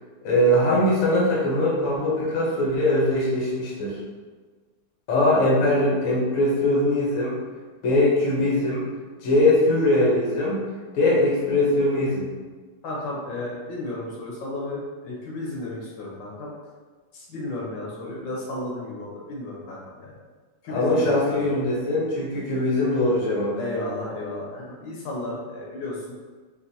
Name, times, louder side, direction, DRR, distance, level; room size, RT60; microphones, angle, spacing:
voice 1, 0.2-4.0 5.1-7.3 7.8-8.9 9.2-10.6 10.9-12.3 20.7-23.6, left 1 dB, 55° left, -4 dB, 1.0 m, -21 dB
voice 2, 12.8-16.5 17.1-20.1 20.6-21.5 23.5-26.0, left 2 dB, 75° left, -4 dB, 1.4 m, -33 dB
3.9 x 2.5 x 2.6 m, 1.4 s
omnidirectional pair, 2.2 m